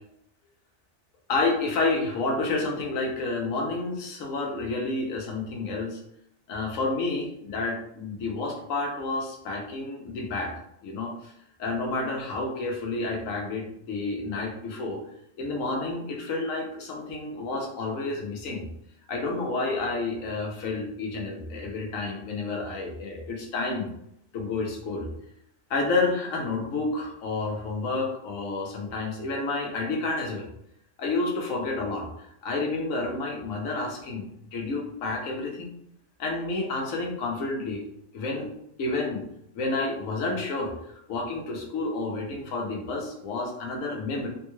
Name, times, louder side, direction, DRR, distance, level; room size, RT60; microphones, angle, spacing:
voice 1, 1.3-6.0 6.5-11.3 11.6-15.0 15.4-18.6 19.1-23.9 24.3-25.1 25.7-30.5 31.0-35.7 36.2-37.8 38.1-38.5 38.8-39.2 39.5-40.7 41.1-44.3, left 3 dB, 90° left, 0 dB, 1.2 m, -30 dB
3.5 x 2.3 x 3.0 m, 0.75 s
omnidirectional pair, 1.3 m